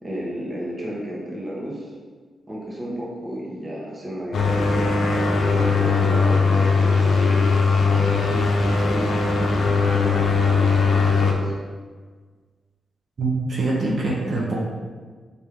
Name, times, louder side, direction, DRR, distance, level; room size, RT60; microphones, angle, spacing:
voice 1, 0.0-1.9 2.5-7.6 8.1-11.5, equal, 25° right, -4 dB, 0.9 m, -32 dB
sound 1, 4.3-11.3, left 4 dB, 70° left, 0.6 m, -19 dB
voice 2, 13.2-14.6, right 2 dB, 55° right, -4 dB, 0.8 m, -24 dB
4.5 x 2.6 x 3.5 m, 1.5 s
cardioid pair, 95°, 0 cm